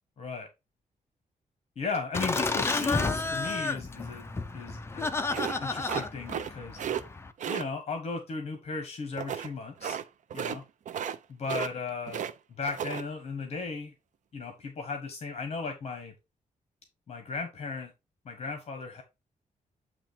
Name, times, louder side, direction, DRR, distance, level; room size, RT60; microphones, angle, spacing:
voice 1, 0.2-0.5 1.8-4.2 4.5-5.1 5.6-6.8 7.4-10.0 10.3-10.6 11.4-12.2 12.6-13.9 14.3-16.1 17.1-17.9 18.2-19.0, left 4 dB, 50° left, 5 dB, 1.3 m, -36 dB
Laughter, 2.1-7.3, left 3 dB, 20° left, 0.5 m, -31 dB
sound 1, 5.3-6.5 6.8-7.0 7.4-7.6 9.2-9.5 9.8-10.0 10.3-10.6 10.9-11.2 11.4-12.3 12.6-13.0, right 8 dB, 65° right, 0.5 m, -33 dB
8.8 x 3.0 x 4.2 m, 0.25 s
wide cardioid pair, 155°, 14 cm